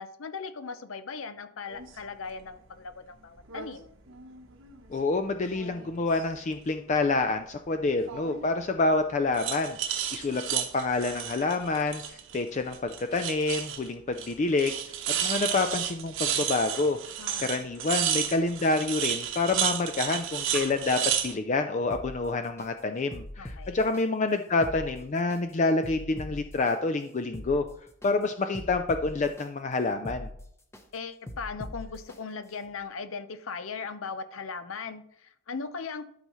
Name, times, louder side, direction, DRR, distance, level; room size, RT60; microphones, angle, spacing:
voice 1, 0.0-3.9 17.2-17.5 23.4-23.8 30.9-36.1, left 5 dB, 85° left, 11 dB, 0.7 m, -38 dB
sound 1, 1.7-1.9 3.4-3.7 4.1-5.0 5.4-6.4 8.1-8.5 9.3-12.4 12.7-13.9 14.2-14.3 14.6-21.3, right 9 dB, 70° right, 1.0 m, -32 dB
voice 2, 4.9-9.8 10.1-12.0 12.3-14.8 15.2-17.0 17.4-27.6 28.0-30.3, left 3 dB, 35° left, 7 dB, 0.4 m, -27 dB
sound 2, 21.9-22.7 23.1-24.0 24.5-25.4 25.8-26.7 27.2-28.1 28.5-29.5 29.9-30.8 31.3-32.2 32.6-32.7, left 1 dB, 15° left, 0.8 m, -42 dB
12.5 x 5.5 x 3.1 m, 0.68 s
head